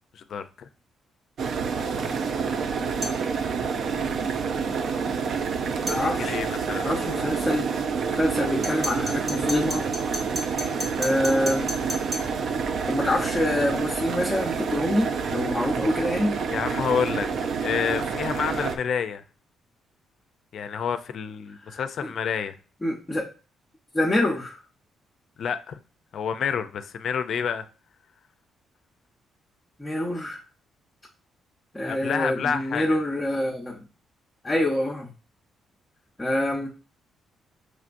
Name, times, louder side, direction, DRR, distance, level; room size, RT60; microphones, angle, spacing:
voice 1, 0.1-0.7 6.2-6.9 16.5-17.3 17.6-19.2 20.5-22.5 25.4-25.8 26.1-27.7 31.9-33.0, left 7 dB, 60° left, 0.4 m, -28 dB
boiling water in electric kettle, 1.4-18.8, right 5 dB, 60° right, 0.5 m, -28 dB
sound 1, 3.0-3.3 5.9-6.1 8.6-12.4, equal, 40° right, 1.6 m, -33 dB
voice 2, 5.9-6.4 6.8-7.7 8.1-9.9 11.0-11.7 12.9-16.4 21.7-22.1 22.8-23.3 23.9-24.6 29.8-30.4 31.7-33.8 34.4-35.1 36.2-36.7, left 1 dB, 20° left, 0.8 m, -26 dB
5.7 x 3.1 x 2.5 m
cardioid pair, 90°, 0 cm